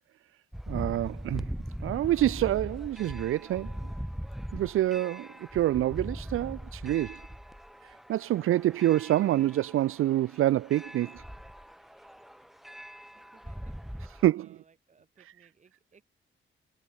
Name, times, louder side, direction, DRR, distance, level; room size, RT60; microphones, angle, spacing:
sound 1, 0.5-14.3, equal, ahead, 1.1 m, -41 dB
voice 1, 0.7-1.5 1.8-3.7 4.5-7.2 7.8-11.2 14.2-14.5, right 14 dB, 80° right, 0.5 m, -27 dB
voice 2, 13.1-16.0, right 5 dB, 35° right, 6.4 m, -63 dB
wide cardioid pair, 175°, 21 cm